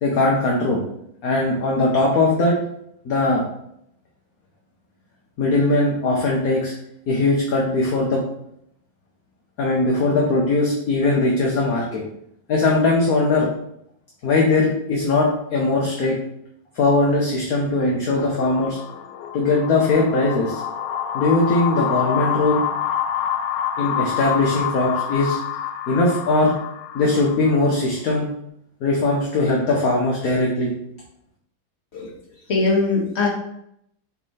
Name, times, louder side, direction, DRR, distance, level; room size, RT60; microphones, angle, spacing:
voice 1, 0.0-0.8 1.2-2.6 3.0-3.4 5.4-6.7 7.1-8.2 9.6-12.0 12.5-13.5 14.2-16.2 16.7-18.8 19.3-20.6 21.1-22.6 23.8-25.4 25.9-26.5 26.9-28.3 28.8-30.7, left 2 dB, 55° left, -2 dB, 1.2 m, -20 dB
sound 1, 18.2-27.7, left 9 dB, 70° left, 1.2 m, -27 dB
voice 2, 31.9-33.3, left 3 dB, 35° left, -2 dB, 1.7 m, -22 dB
7.5 x 3.4 x 4.2 m, 0.73 s
omnidirectional pair, 2.2 m